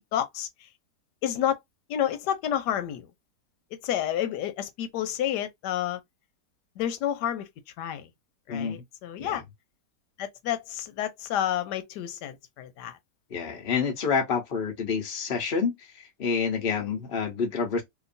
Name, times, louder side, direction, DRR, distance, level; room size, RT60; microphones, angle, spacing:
voice 1, 0.1-0.5 1.2-1.6 1.9-3.1 3.8-6.0 6.8-7.5 7.8-8.1 8.5-9.4 10.2-13.0, left 10 dB, 90° left, 1.2 m, -29 dB
voice 2, 8.5-8.8 9.2-9.4 13.3-17.8, left 5 dB, 40° left, 1.0 m, -28 dB
2.9 x 2.6 x 2.5 m
omnidirectional pair, 1.8 m